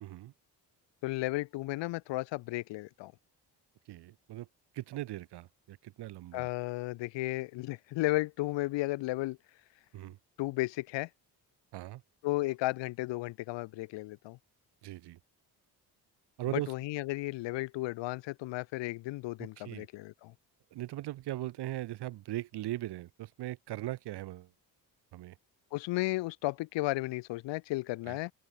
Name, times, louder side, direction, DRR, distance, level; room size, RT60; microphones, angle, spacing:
voice 1, 0.0-0.3 3.9-4.5 4.7-6.5 9.9-10.2 11.7-12.0 14.8-15.2 16.4-16.7 19.6-19.9 20.7-24.5 25.1-25.3 28.1-28.2, right 15 dB, 65° right, 0.7 m, -39 dB
voice 2, 1.0-3.1 6.3-9.4 10.4-11.1 12.2-14.4 16.5-20.3 25.7-28.3, left 20 dB, 80° left, 0.6 m, -34 dB
open air
cardioid pair, 80°, 43 cm